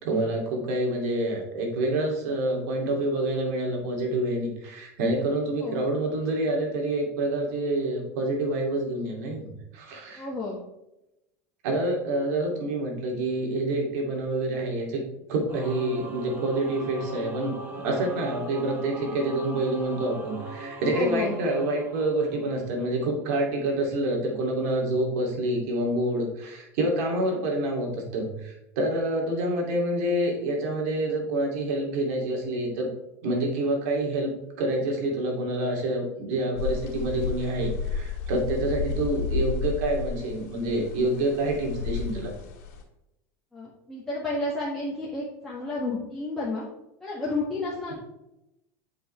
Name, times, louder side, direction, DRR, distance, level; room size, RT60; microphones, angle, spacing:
voice 1, 0.0-9.5 9.7-10.3 11.6-15.0 15.3-17.6 17.8-32.9 33.2-34.3 34.6-42.3, right 1 dB, 70° right, 0 dB, 2.6 m, -27 dB
voice 2, 10.2-10.6 20.9-21.3 43.5-46.7 47.0-47.9, left 2 dB, 5° left, -8 dB, 1.6 m, -31 dB
Singing / Musical instrument, 15.5-23.0, right 1 dB, 25° right, 1.8 m, -39 dB
sound 1, 36.6-42.8, left 5 dB, 70° left, 2.4 m, -32 dB
8.1 x 5.4 x 3.3 m, 0.90 s
supercardioid pair, 130°, 9 cm